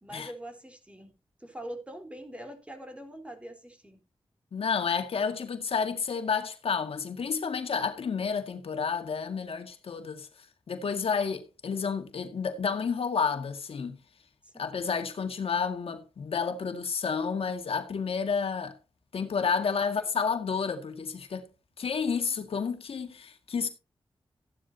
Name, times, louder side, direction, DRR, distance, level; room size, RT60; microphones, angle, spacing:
voice 1, 0.0-4.0 14.4-14.8 19.6-20.1, right 1 dB, 10° right, 3.9 m, -44 dB
voice 2, 4.5-10.3 10.7-14.0 14.6-18.8 19.1-21.4 21.8-23.7, left 6 dB, 90° left, 2.1 m, -30 dB
15.0 x 11.0 x 2.8 m
wide cardioid pair, 105°, 10 cm